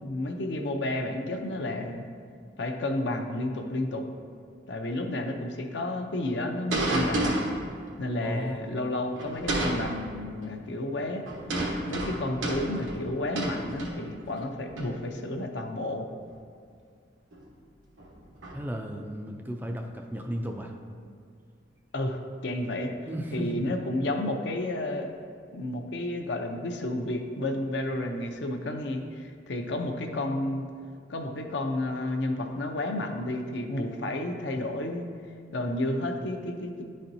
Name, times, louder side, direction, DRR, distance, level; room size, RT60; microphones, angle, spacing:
voice 1, 0.0-2.1 2.6-4.0 4.7-7.4 8.0-11.3 11.9-16.1 21.9-22.9 23.3-25.1 25.5-30.7 31.1-35.1 35.5-36.8, left 1 dB, 65° left, 4 dB, 0.6 m, -31 dB
sound 1, 6.7-7.7 9.2-10.0 11.2-14.4 14.8-15.0 16.3-16.4 17.3-17.4 18.0-18.5, right 1 dB, 90° right, 1.1 m, -30 dB
voice 2, 8.2-8.6 18.5-20.7 23.1-23.5, equal, 10° right, 3 dB, 0.3 m, -34 dB
10.0 x 4.3 x 2.7 m, 2.2 s
head